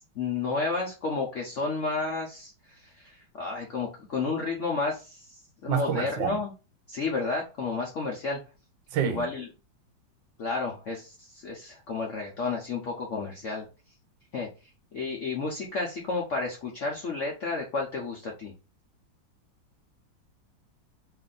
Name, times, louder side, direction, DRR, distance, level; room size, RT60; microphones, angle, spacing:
voice 1, 0.0-6.5 6.9-8.4 9.0-9.5 10.4-13.7 14.3-14.5 14.9-18.5, left 4 dB, 70° left, 0.7 m, -31 dB
voice 2, 5.7-6.4 8.9-9.3, right 8 dB, 75° right, 1.3 m, -27 dB
3.3 x 2.5 x 3.7 m
omnidirectional pair, 2.2 m